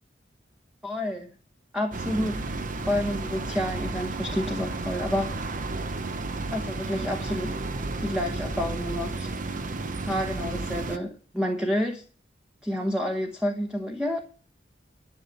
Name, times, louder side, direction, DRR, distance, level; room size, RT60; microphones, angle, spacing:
voice 1, 0.8-1.3 1.7-5.4 6.5-7.5 8.0-9.3 10.0-12.0 12.6-14.2, left 1 dB, 5° right, 1.1 m, -29 dB
sound 1, 1.9-11.0, right 3 dB, 45° right, 0.9 m, -32 dB
12.0 x 5.8 x 7.0 m
head